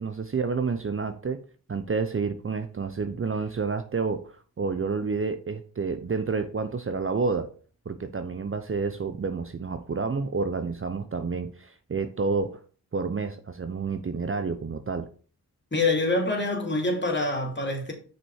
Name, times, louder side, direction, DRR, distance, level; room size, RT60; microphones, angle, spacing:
voice 1, 0.0-1.4 1.7-7.5 7.9-12.6 12.9-15.1, right 4 dB, 35° right, 0.8 m, -29 dB
voice 2, 15.7-17.9, left 2 dB, 30° left, 2.7 m, -25 dB
6.2 x 5.2 x 4.8 m
supercardioid pair, 45°, 40 cm